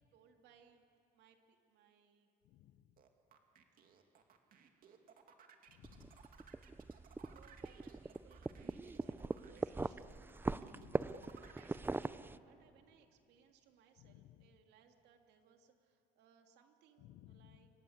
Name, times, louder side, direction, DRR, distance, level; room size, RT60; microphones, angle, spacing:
voice 1, 0.1-0.8 1.1-2.3 4.9-5.0 7.3-10.8 11.2-17.7, right 7 dB, 80° right, 4 dB, 2.8 m, -68 dB
voice 2, 2.4-2.8 5.7-6.2 10.7-11.1 14.0-14.5 17.0-17.6, left 14 dB, 85° left, 15 dB, 0.9 m, -60 dB
sound 1, 3.0-12.1, right 7 dB, 55° right, 2.6 m, -61 dB
sound 2, 5.8-12.4, right 3 dB, 10° right, 0.6 m, -41 dB
28.5 x 24.5 x 8.1 m, 2.5 s
cardioid pair, 110°, 17 cm